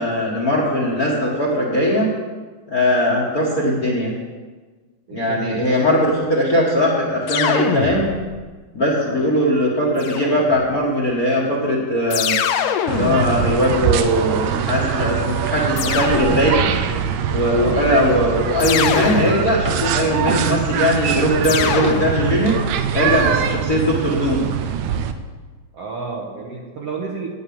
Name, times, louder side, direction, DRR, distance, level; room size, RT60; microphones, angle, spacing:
voice 1, 0.0-2.1 2.7-4.1 5.1-8.1 8.7-12.4 12.9-16.7 17.3-22.6 22.9-23.3 23.7-24.4, equal, 45° left, -2 dB, 1.2 m, -19 dB
voice 2, 5.1-5.9 9.0-9.3 17.5-17.9 22.9-23.3 25.7-27.3, right 4 dB, 65° right, -1 dB, 1.6 m, -31 dB
sound 1, 7.3-8.5 10.0-10.8 12.1-14.4 15.8-16.9 18.6-19.9 21.4-22.7, left 9 dB, 80° left, 2.2 m, -24 dB
sound 2, 12.9-25.1, right 8 dB, 80° right, 1.9 m, -23 dB
9.0 x 7.8 x 8.5 m, 1.4 s
omnidirectional pair, 4.0 m